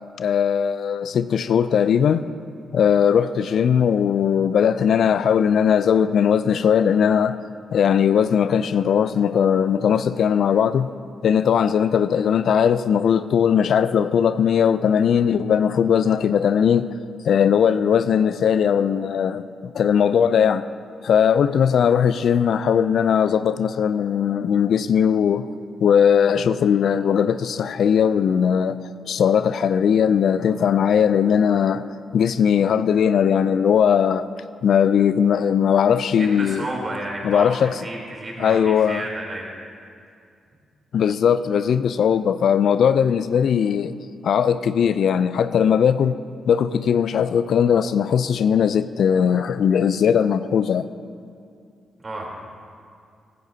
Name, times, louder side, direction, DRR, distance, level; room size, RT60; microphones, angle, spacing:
voice 1, 0.2-2.3 2.7-7.4 7.7-10.9 11.2-16.9 17.2-20.7 21.0-25.5 25.8-28.8 29.1-31.8 32.1-34.3 34.6-36.6 37.2-37.8 38.4-39.0 40.9-43.9 44.2-46.2 46.5-50.9, left 8 dB, 65° left, 13 dB, 0.3 m, -19 dB
voice 2, 36.2-39.5 52.0-52.3, right 2 dB, 40° right, -2 dB, 3.5 m, -32 dB
15.5 x 14.5 x 2.8 m, 2.4 s
hypercardioid pair, 40°, 0 cm